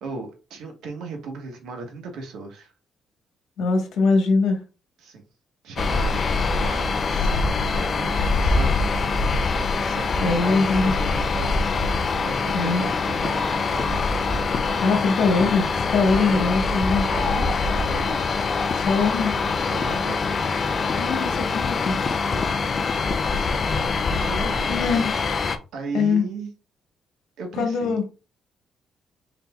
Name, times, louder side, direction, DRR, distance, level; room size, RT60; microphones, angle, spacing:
voice 1, 0.0-2.7 5.0-5.2 5.6-7.3 7.7-9.2 9.7-14.2 16.0-16.5 17.0-18.2 19.6-20.2 22.3-22.9 24.3-24.8 25.7-26.5 27.4-28.0, right 4 dB, 80° right, 1.3 m, -36 dB
voice 2, 3.6-4.6 10.2-10.9 12.5-12.9 14.8-17.0 18.8-19.3 21.0-22.2 24.7-25.2 25.9-26.2 27.6-28.0, left 4 dB, 80° left, 1.3 m, -22 dB
sound 1, 5.8-25.6, left 4 dB, 35° left, 0.5 m, -24 dB
4.1 x 4.1 x 2.3 m
cardioid pair, 130°, 0 cm